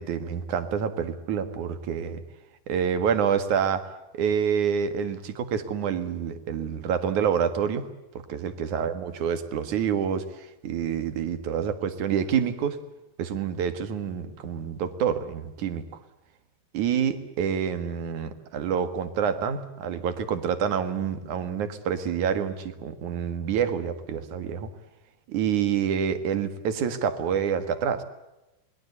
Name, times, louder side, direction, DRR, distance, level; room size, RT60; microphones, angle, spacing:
voice 1, 0.0-2.2 2.7-3.9 4.1-7.8 8.3-12.8 13.2-16.0 16.7-24.7 25.3-28.0, right 7 dB, 55° right, 10 dB, 2.8 m, -27 dB
28.5 x 21.5 x 8.2 m, 0.97 s
omnidirectional pair, 4.7 m